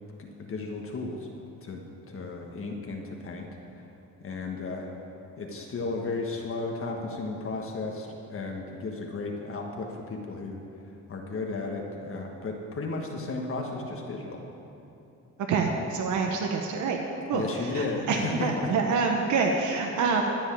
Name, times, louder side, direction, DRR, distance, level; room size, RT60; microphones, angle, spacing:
voice 1, 0.2-1.3 1.6-3.8 4.2-4.9 5.4-10.6 11.1-14.4 17.3-18.7, left 3 dB, 45° left, 1 dB, 1.4 m, -34 dB
voice 2, 15.5-17.0 17.3-17.4 17.7-20.2, right 5 dB, 75° right, 2 dB, 1.1 m, -26 dB
13.5 x 5.5 x 8.7 m, 2.9 s
cardioid pair, 90°, 30 cm